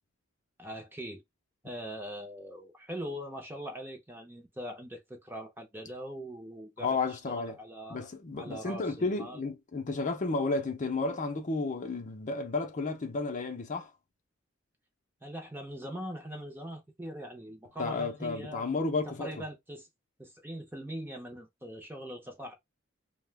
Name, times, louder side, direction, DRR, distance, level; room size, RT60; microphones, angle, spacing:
voice 1, 0.6-1.2 1.6-8.1 8.4-9.4 15.2-18.7 19.0-19.9 20.2-22.5, equal, 10° right, 0.6 m, -42 dB
voice 2, 6.8-7.6 7.9-13.9 17.8-19.3, left 3 dB, 40° left, 0.6 m, -32 dB
2.4 x 2.1 x 3.3 m
head